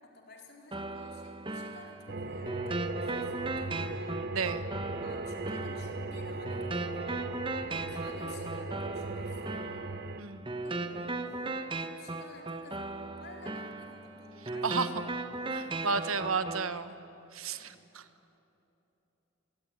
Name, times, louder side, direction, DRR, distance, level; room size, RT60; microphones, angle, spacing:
voice 1, 0.0-4.3 5.0-7.1 7.4-7.5 7.7-9.9 10.6-11.6 12.0-16.3 17.5-17.8, left 2 dB, 50° left, 1 dB, 4.3 m, -53 dB
sound 1, 0.7-16.7, right 2 dB, 25° right, 1.1 m, -38 dB
sound 2, 2.1-10.2, right 2 dB, 50° right, 0.8 m, -38 dB
voice 2, 4.3-4.6 10.2-10.5 14.6-15.0 15.5-16.9 17.3-18.0, right 4 dB, 85° right, 12 dB, 1.2 m, -32 dB
26.0 x 21.0 x 9.8 m, 3.0 s
head